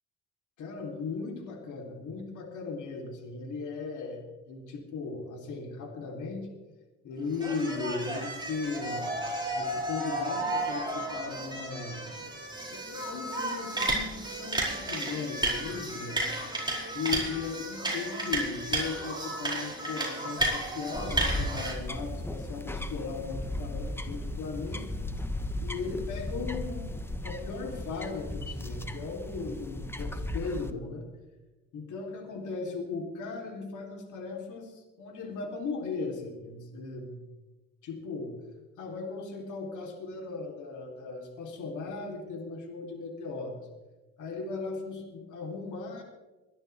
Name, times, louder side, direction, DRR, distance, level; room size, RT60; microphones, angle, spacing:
voice 1, 0.6-6.5 7.0-9.3 9.5-12.0 12.7-16.3 16.9-25.0 25.6-31.0 31.7-37.2 37.8-38.3 38.8-43.7 44.2-46.0, left 4 dB, 80° left, 1 dB, 3.3 m, -37 dB
sound 1, 7.3-21.7, right 1 dB, 15° right, 5.1 m, -33 dB
sound 2, 20.9-30.7, left 1 dB, 10° left, 1.1 m, -36 dB
23.0 x 12.0 x 3.4 m, 1.1 s
cardioid pair, 90°, 30 cm